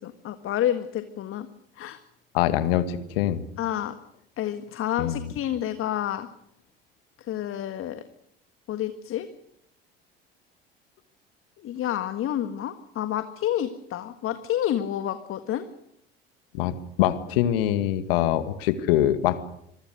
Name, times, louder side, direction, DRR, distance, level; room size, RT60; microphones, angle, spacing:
voice 1, 0.0-1.5 1.8-2.0 3.6-3.9 4.4-6.3 7.3-8.0 8.7-9.3 11.6-15.6, left 11 dB, 45° left, 10 dB, 1.7 m, -29 dB
voice 2, 2.3-3.4 5.0-5.3 16.5-19.4, left 12 dB, 65° left, 12 dB, 2.0 m, -24 dB
26.5 x 23.0 x 6.6 m, 0.73 s
figure-of-eight pair, 65°, 30 cm